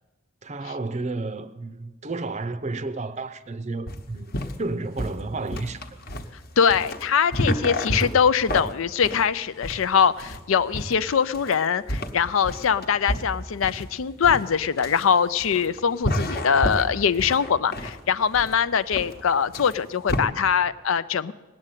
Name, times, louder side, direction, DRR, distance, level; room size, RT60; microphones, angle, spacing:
voice 1, 0.4-6.0, right 3 dB, 35° right, 0.6 m, -32 dB
sound 1, 3.9-20.2, left 1 dB, 50° left, 1.1 m, -30 dB
voice 2, 6.6-21.3, left 7 dB, 75° left, 0.5 m, -22 dB
19.0 x 7.6 x 9.1 m
head